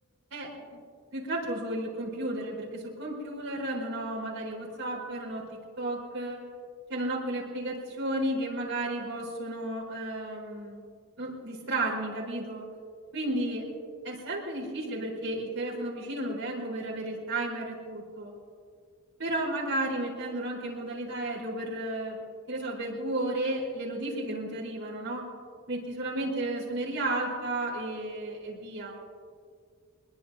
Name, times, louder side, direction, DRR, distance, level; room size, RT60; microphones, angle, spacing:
voice 1, 0.3-0.6 1.1-5.5 5.8-6.4 6.9-10.8 11.2-12.7 13.1-13.7 14.0-18.3 19.2-22.2 22.5-25.3 25.7-29.0, right 1 dB, 75° right, -5 dB, 4.0 m, -33 dB
24.0 x 21.5 x 2.7 m, 2.1 s
head